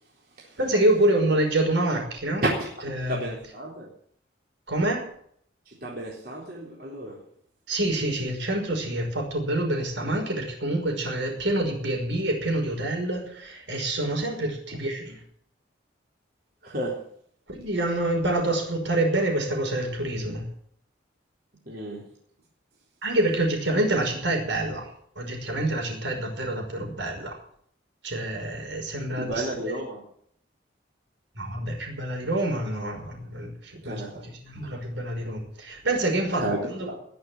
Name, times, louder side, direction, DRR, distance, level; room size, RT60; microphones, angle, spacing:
voice 1, 0.6-2.5 2.8-3.3 4.7-5.1 7.7-15.2 17.5-20.4 23.0-27.4 28.0-29.8 31.4-37.0, right 1 dB, 75° right, 3 dB, 5.7 m, -27 dB
voice 2, 3.1-3.9 5.7-7.2 16.6-17.0 21.7-22.1 29.2-30.0 33.8-34.3 34.6-34.8 36.3-37.0, right 1 dB, 50° right, -4 dB, 4.0 m, -32 dB
20.5 x 7.0 x 9.3 m, 0.64 s
head